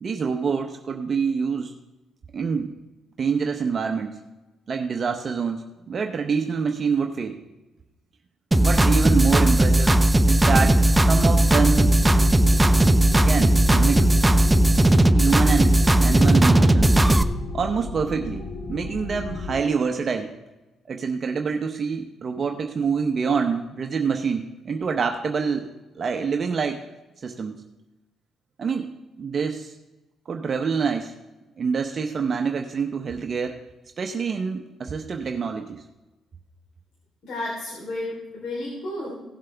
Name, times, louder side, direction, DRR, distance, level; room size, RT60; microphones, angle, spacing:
voice 1, 0.0-1.7 2.3-2.7 3.2-4.1 4.7-7.4 8.6-10.0 10.3-12.0 13.2-14.1 15.1-16.9 17.5-18.4 18.7-20.3 20.9-25.7 26.0-26.8 27.2-27.6 28.6-28.9 29.2-29.7 30.3-31.1 31.6-33.6 34.0-35.8, right 5 dB, 45° right, 4 dB, 0.8 m, -26 dB
sound 1, 8.5-17.2, right 1 dB, 10° right, 0.6 m, -17 dB
sound 2, 11.6-19.6, left 3 dB, 55° left, 1.1 m, -33 dB
voice 2, 37.2-39.2, left 1 dB, 70° left, -5 dB, 3.5 m, -32 dB
17.0 x 7.5 x 3.4 m, 1.1 s
cardioid pair, 90°, 0 cm